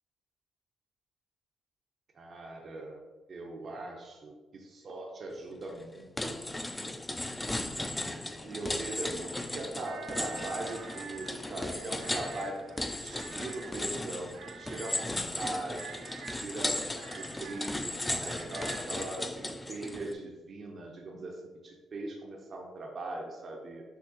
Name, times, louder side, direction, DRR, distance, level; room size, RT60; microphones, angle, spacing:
voice 1, 2.1-3.0 3.3-6.4 8.4-16.8 17.2-23.8, right 2 dB, 50° right, -1 dB, 0.6 m, -40 dB
sound 1, 5.6-5.8 6.2-20.1, left 1 dB, 15° left, 0.4 m, -36 dB
sound 2, 9.8-18.9, right 5 dB, 90° right, 0.5 m, -48 dB
6.0 x 2.9 x 2.8 m, 1.3 s
cardioid pair, 90°, 0 cm